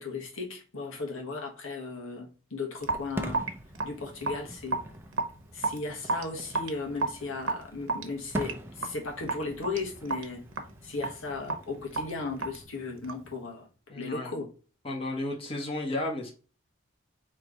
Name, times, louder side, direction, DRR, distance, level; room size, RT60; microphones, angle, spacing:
voice 1, 0.0-3.5 3.8-4.8 5.5-10.4 10.8-13.7 13.9-14.5, left 3 dB, 80° left, 1.4 m, -36 dB
Fireworks, 2.8-12.7, equal, 10° right, 0.5 m, -44 dB
Raindrop / Drip, 2.8-13.3, right 3 dB, 75° right, 1.0 m, -34 dB
voice 2, 13.9-14.4 14.8-16.3, left 2 dB, 25° left, 1.2 m, -33 dB
4.4 x 3.2 x 3.8 m
head